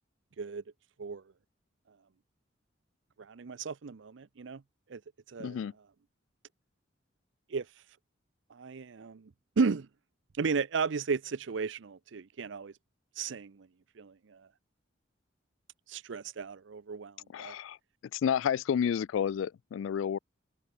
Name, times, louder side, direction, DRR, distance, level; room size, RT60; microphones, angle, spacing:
voice 1, 3.2-4.6 4.9-5.0 5.3-5.6 7.5-7.8 8.5-9.2 9.6-9.9 10.3-12.7 13.1-13.7 14.0-14.4 15.9-17.5, right 5 dB, 65° right, 0.5 m, -34 dB
voice 2, 5.4-5.7 17.3-17.8 18.1-20.2, left 8 dB, 80° left, 0.3 m, -30 dB
open air
head